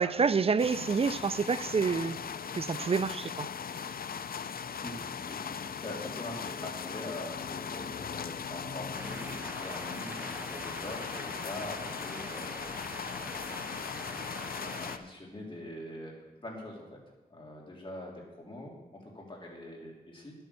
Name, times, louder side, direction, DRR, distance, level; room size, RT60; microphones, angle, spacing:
voice 1, 0.0-2.2 2.6-3.5, right 5 dB, 40° right, 0.4 m, -28 dB
sound 1, 0.6-15.0, left 7 dB, 65° left, 0.5 m, -39 dB
voice 2, 4.7-12.6 14.0-16.1 16.4-17.0 17.3-20.3, left 1 dB, 30° left, 3.2 m, -43 dB
sound 2, 8.9-15.0, right 1 dB, 10° right, 1.0 m, -44 dB
10.5 x 9.1 x 6.9 m
wide cardioid pair, 105°, 16 cm